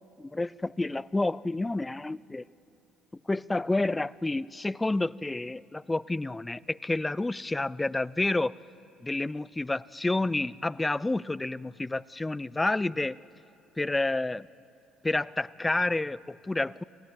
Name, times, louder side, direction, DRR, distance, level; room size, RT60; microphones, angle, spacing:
voice 1, 0.2-2.4 3.3-8.5 9.0-13.2 13.8-14.5 15.0-16.8, left 2 dB, 15° left, 22 dB, 0.5 m, -29 dB
26.5 x 16.5 x 8.8 m, 2.7 s
hypercardioid pair, 60°, 0 cm